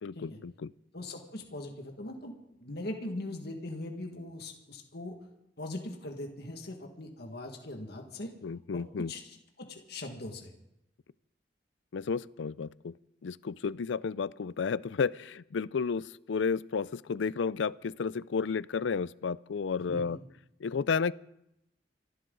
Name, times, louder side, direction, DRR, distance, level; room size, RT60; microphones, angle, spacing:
voice 1, 0.0-0.7 8.4-9.1 11.9-12.9 13.2-20.2 20.6-21.1, left 5 dB, 80° left, 20 dB, 0.4 m, -32 dB
voice 2, 0.9-2.3 2.6-5.1 5.6-8.3 8.7-8.8 9.1-10.5 19.9-20.2, left 1 dB, 60° left, 3 dB, 1.9 m, -40 dB
26.0 x 12.5 x 3.9 m, 0.83 s
head